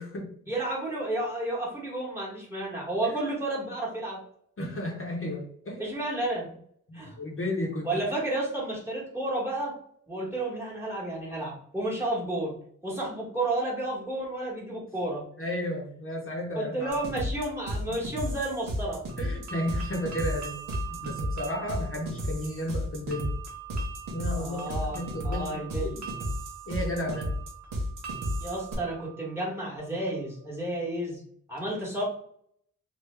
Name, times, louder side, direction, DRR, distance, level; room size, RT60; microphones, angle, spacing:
voice 1, 0.5-4.2 5.8-6.6 6.9-7.2 7.8-9.7 10.1-12.5 12.8-15.2 16.5-19.0 24.4-25.9 28.4-31.2 31.5-32.0, right 1 dB, 10° right, -3 dB, 1.1 m, -31 dB
voice 2, 4.6-5.8 6.9-7.9 15.4-16.9 17.9-18.0 19.2-20.6 20.9-23.3 24.1-26.0 26.7-27.3, left 1 dB, 40° left, -1 dB, 0.7 m, -33 dB
sound 1, 16.9-28.7, equal, 90° right, 0.9 m, -33 dB
sound 2, 19.1-29.9, right 9 dB, 60° right, 0.9 m, -44 dB
3.3 x 2.5 x 3.2 m, 0.64 s
wide cardioid pair, 165°, 32 cm